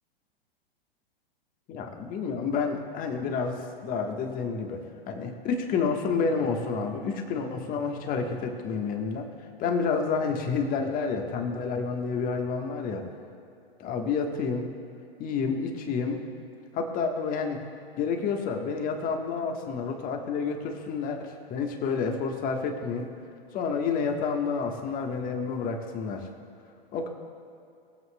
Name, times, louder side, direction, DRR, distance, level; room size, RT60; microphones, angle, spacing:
voice 1, 1.7-9.3 9.6-13.1 13.8-14.7 15.2-16.2 16.7-17.6 18.0-23.1 23.5-26.3 26.9-27.1, left 5 dB, 30° left, 3 dB, 1.4 m, -29 dB
21.0 x 7.7 x 2.3 m, 2.6 s
hypercardioid pair, 110°, 30 cm